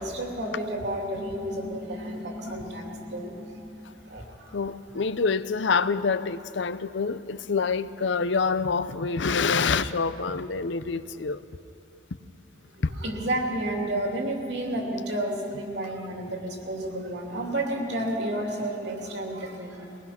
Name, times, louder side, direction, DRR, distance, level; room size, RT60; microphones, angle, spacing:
voice 1, 0.0-4.6 4.9-5.0 12.9-20.0, right 1 dB, 65° right, 1 dB, 2.9 m, -31 dB
voice 2, 4.5-11.4 12.8-12.9, left 5 dB, 75° left, 14 dB, 0.6 m, -26 dB
22.5 x 19.5 x 5.9 m, 2.9 s
head